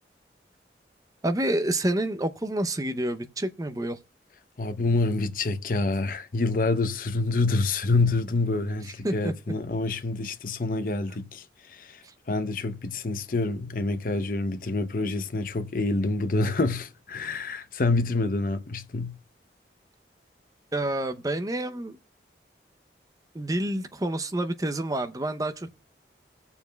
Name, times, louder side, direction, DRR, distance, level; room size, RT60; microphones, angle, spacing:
voice 1, 1.2-4.0 8.8-9.3 20.7-22.0 23.3-25.7, right 1 dB, 20° right, 0.6 m, -28 dB
voice 2, 4.6-12.0 12.3-19.1, left 3 dB, 50° left, 0.7 m, -27 dB
19.5 x 7.0 x 2.2 m
head